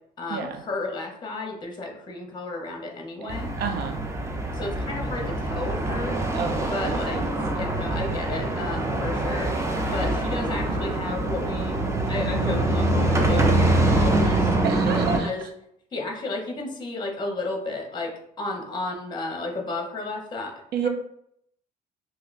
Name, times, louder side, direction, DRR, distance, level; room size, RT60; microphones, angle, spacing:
voice 1, 0.2-3.5 4.5-6.2 6.7-7.2 7.5-9.5 9.9-14.5 15.2-15.4 15.9-20.9, left 2 dB, 25° left, 3 dB, 0.7 m, -33 dB
sound 1, 3.3-15.2, right 2 dB, 15° right, 0.5 m, -24 dB
voice 2, 3.6-4.0 6.3-7.3 14.6-15.3 20.7-20.9, right 6 dB, 70° right, 6 dB, 0.6 m, -30 dB
2.6 x 2.2 x 3.9 m, 0.72 s
cardioid pair, 110°, 17 cm